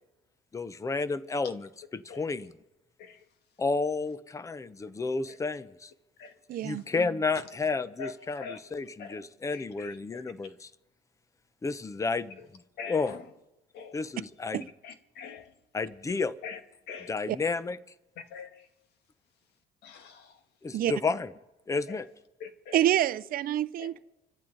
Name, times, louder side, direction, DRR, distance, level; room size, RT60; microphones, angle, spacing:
voice 1, 0.5-2.5 3.6-5.9 6.6-10.7 11.6-12.4 12.9-13.2 13.9-14.6 15.7-16.3 17.1-17.8 20.6-21.3 21.7-22.1, left 4 dB, 20° left, 0.7 m, -31 dB
voice 2, 6.5-6.8 14.5-14.6 17.3-17.4 20.7-20.9 22.7-24.1, right 12 dB, 60° right, 0.6 m, -27 dB
voice 3, 7.7-8.1 8.4-10.3 12.8-13.2 13.7-14.0 14.8-15.5 16.4-16.6 16.9-17.1 18.3-18.7 19.8-20.4 21.9-22.0 22.4-22.8 23.8-23.9, left 6 dB, 75° left, 1.6 m, -44 dB
25.5 x 12.5 x 3.9 m
cardioid pair, 110°, 17 cm